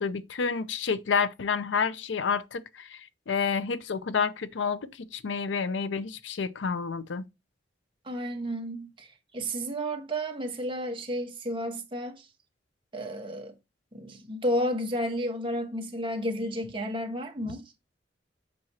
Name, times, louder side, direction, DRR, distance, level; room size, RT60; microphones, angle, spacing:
voice 1, 0.0-7.2, left 5 dB, 80° left, 0.6 m, -29 dB
voice 2, 8.0-12.3 12.9-13.5 13.9-17.7, equal, 25° right, 1.4 m, -32 dB
7.6 x 5.9 x 2.9 m
head